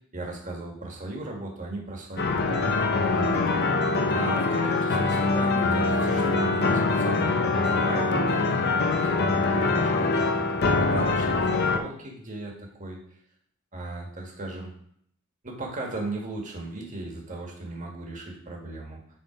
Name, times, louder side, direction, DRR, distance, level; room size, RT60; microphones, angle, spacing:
voice 1, 0.1-2.4 3.0-3.3 4.0-13.2 13.7-14.7 15.4-19.0, right 2 dB, 35° right, 0 dB, 1.6 m, -36 dB
sound 1, 2.2-11.8, left 3 dB, 50° left, 0.6 m, -24 dB
7.6 x 3.8 x 5.0 m, 0.66 s
head